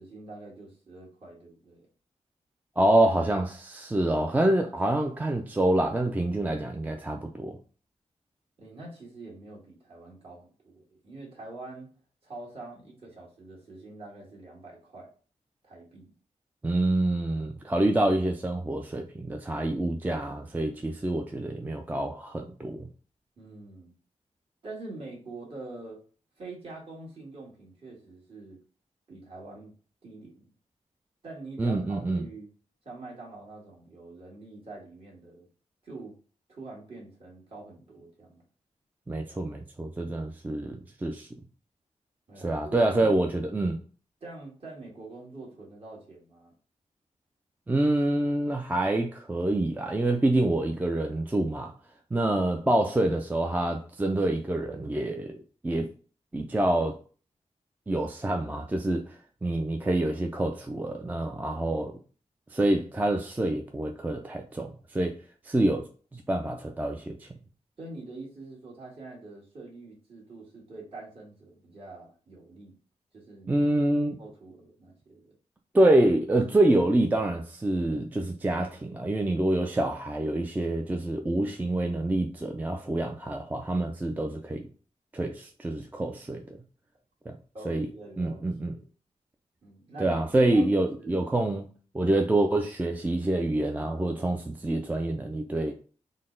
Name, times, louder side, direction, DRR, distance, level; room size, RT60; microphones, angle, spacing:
voice 1, 0.0-1.9 8.6-11.9 12.2-15.1 15.6-16.1 23.4-23.9 24.6-26.0 26.4-28.6 29.1-29.7 30.0-30.5 31.2-32.5 32.8-35.5 35.8-36.2 36.5-38.4 42.3-43.2 44.2-46.5 67.8-72.8 73.1-73.7 74.2-75.3 87.5-88.9 89.6-90.6 91.0-91.2, right 2 dB, 50° right, 1.6 m, -45 dB
voice 2, 2.8-7.6 16.6-22.9 31.6-32.2 39.1-41.3 42.4-43.8 47.7-51.7 52.1-55.4 55.6-55.9 56.3-57.0 57.9-61.9 62.5-65.2 65.4-65.9 66.1-67.3 73.5-74.2 75.7-84.7 85.1-86.6 87.3-87.4 87.7-87.9 88.2-88.7 90.0-95.7, right 1 dB, 15° right, 0.3 m, -26 dB
3.9 x 2.1 x 3.7 m
wide cardioid pair, 120°, 13 cm